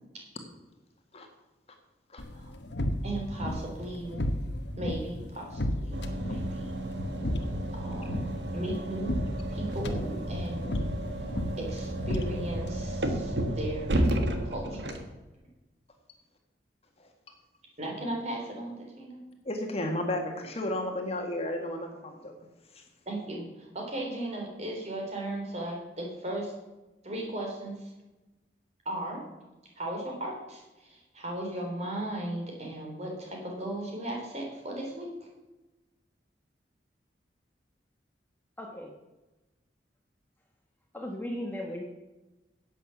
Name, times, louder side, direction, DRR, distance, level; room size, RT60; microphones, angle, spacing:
sound 1, 2.2-12.7, left 1 dB, 85° left, 1.2 m, -34 dB
voice 1, 3.0-4.2 4.8-5.9 6.2-6.7 7.7-9.1 9.5-10.8 11.6-14.1 14.5-14.9 17.8-19.2 23.1-26.5 27.0-27.9 28.9-29.2 29.8-35.1, right 1 dB, 40° right, 0 dB, 3.7 m, -36 dB
sound 2, 5.9-15.1, right 1 dB, 85° right, 1.5 m, -32 dB
voice 2, 19.5-22.3 22.7-22.8, left 1 dB, 35° left, 3 dB, 1.7 m, -33 dB
voice 3, 38.6-38.9 40.9-41.8, left 1 dB, 10° left, 0 dB, 1.2 m, -36 dB
11.0 x 8.4 x 7.1 m, 1.1 s
head